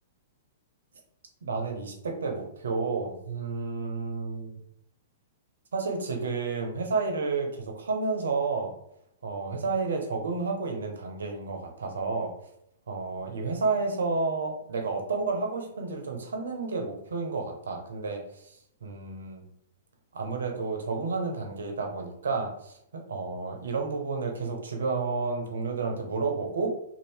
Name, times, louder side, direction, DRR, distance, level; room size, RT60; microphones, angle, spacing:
voice 1, 1.4-4.5 5.7-8.7 9.2-12.3 12.9-18.5 18.8-19.4 20.1-26.7, right 4 dB, 80° right, 3 dB, 0.7 m, -31 dB
2.7 x 2.5 x 3.4 m, 0.74 s
hypercardioid pair, 120°, 0 cm